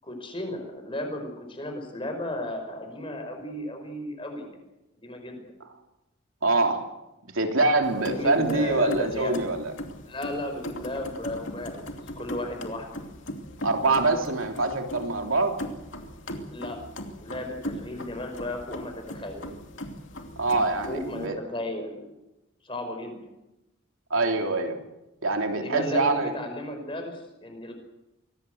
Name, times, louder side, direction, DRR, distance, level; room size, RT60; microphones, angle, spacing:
voice 1, 0.0-4.6 5.0-5.4 7.7-9.4 10.0-12.9 16.5-16.8 17.2-19.5 20.9-22.0 22.6-23.2 25.6-27.7, left 1 dB, 25° left, 5 dB, 5.2 m, -34 dB
voice 2, 6.4-6.9 7.3-9.7 13.6-15.6 20.4-21.4 24.1-24.8 25.2-26.3, right 2 dB, 90° right, 3 dB, 3.2 m, -24 dB
sound 1, 7.8-21.3, equal, 70° left, 2.7 m, -39 dB
24.5 x 18.0 x 7.9 m, 0.96 s
head